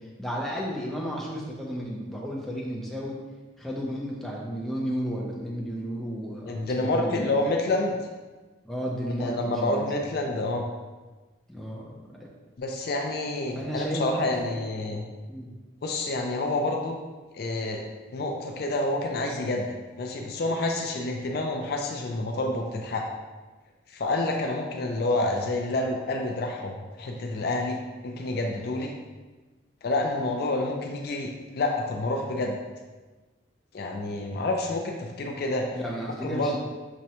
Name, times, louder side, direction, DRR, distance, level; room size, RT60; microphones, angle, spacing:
voice 1, 0.0-3.2 3.6-7.3 8.6-10.1 11.5-12.3 13.5-14.4 15.3-15.5 35.7-36.6, equal, ahead, -4 dB, 0.5 m, -33 dB
voice 2, 6.5-8.0 9.2-10.7 12.6-15.0 15.8-17.0 17.3-17.8 18.1-19.7 20.0-23.0 23.9-27.8 28.0-28.9 29.8-32.6 33.7-35.7 36.2-36.6, left 2 dB, 55° left, 2 dB, 0.4 m, -28 dB
6.1 x 2.1 x 2.8 m, 1.3 s
head